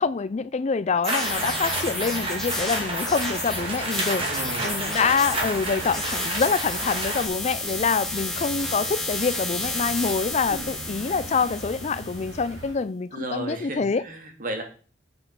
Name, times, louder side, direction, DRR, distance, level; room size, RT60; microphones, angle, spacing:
voice 1, 0.0-4.2 4.6-14.0, left 5 dB, 35° left, 0.4 m, -26 dB
sound 1, 1.0-12.4, left 2 dB, ahead, 1.9 m, -32 dB
sound 2, 1.0-7.3, right 2 dB, 30° right, 2.2 m, -30 dB
sound 3, 1.2-12.7, right 2 dB, 70° right, 3.0 m, -41 dB
voice 2, 4.2-4.8 5.3-6.0 10.5-10.7 13.1-14.6, right 1 dB, 50° right, 2.2 m, -35 dB
8.0 x 7.1 x 5.8 m
head